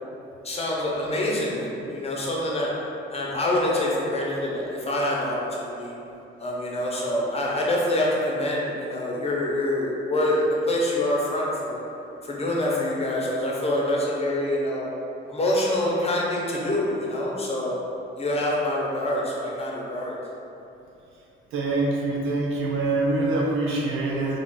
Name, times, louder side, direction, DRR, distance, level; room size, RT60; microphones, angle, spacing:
voice 1, 0.4-5.9 6.4-11.8 12.2-14.9 15.3-17.8 18.2-20.1, left 1 dB, 30° left, -4 dB, 0.8 m, -26 dB
voice 2, 21.5-24.4, right 2 dB, 90° right, -2 dB, 0.6 m, -25 dB
3.4 x 2.5 x 3.7 m, 2.8 s
cardioid pair, 90°, 20 cm